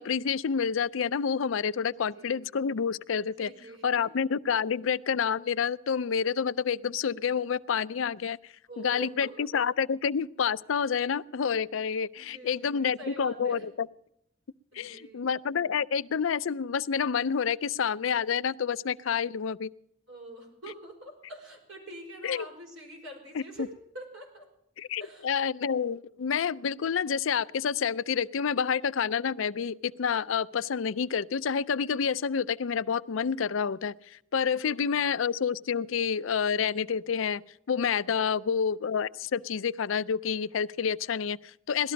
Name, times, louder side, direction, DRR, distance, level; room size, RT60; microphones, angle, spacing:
voice 1, 0.0-3.5 3.8-8.4 8.8-9.3 9.5-13.9 14.7-19.7 22.2-22.4 24.8-37.4 37.7-41.9, left 6 dB, 90° left, 17 dB, 0.5 m, -28 dB
voice 2, 1.8-2.4 3.4-4.1 8.7-9.3 12.2-13.7 14.7-15.3 20.1-24.5 25.0-25.3 34.6-35.2 38.2-38.5, right 1 dB, 85° right, 1 dB, 5.2 m, -45 dB
18.0 x 12.5 x 5.2 m, 0.76 s
head